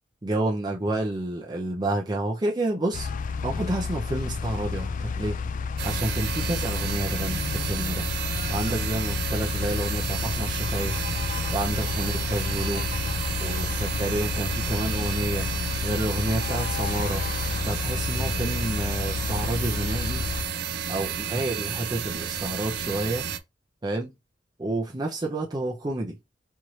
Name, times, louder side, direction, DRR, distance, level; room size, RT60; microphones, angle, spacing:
voice 1, 0.2-3.1 3.4-5.4 5.8-8.0 8.5-11.0 11.5-12.9 13.4-15.5 15.8-17.2 17.6-20.3 20.9-23.3 23.8-24.1 24.6-26.2, right 1 dB, 25° right, 0.6 m, -29 dB
sound 1, 2.9-20.5, left 5 dB, 45° left, 0.3 m, -30 dB
sound 2, 5.8-23.4, right 7 dB, 65° right, 0.6 m, -32 dB
4.5 x 2.5 x 3.1 m
head